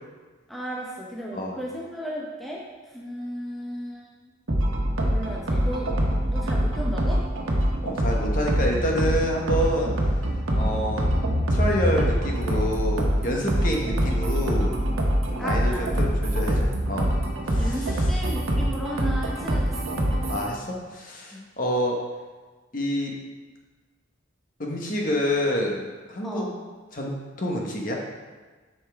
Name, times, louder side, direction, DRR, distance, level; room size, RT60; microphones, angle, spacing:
voice 1, 0.5-2.6 2.9-4.1 5.1-5.9 6.3-7.2 10.5-10.8 15.4-15.9 17.5-20.3 21.3-21.4 26.2-26.5, right 1 dB, ahead, -4 dB, 0.7 m, -34 dB
sound 1, 4.5-20.5, equal, 85° right, 1.2 m, -24 dB
voice 2, 7.8-9.9 10.5-11.0 11.5-14.8 15.3-17.1 17.5-17.8 20.3-22.0 22.7-23.1 24.6-25.8 26.1-26.5 26.9-28.0, equal, 40° left, -1 dB, 1.1 m, -27 dB
8.1 x 5.6 x 3.4 m, 1.4 s
head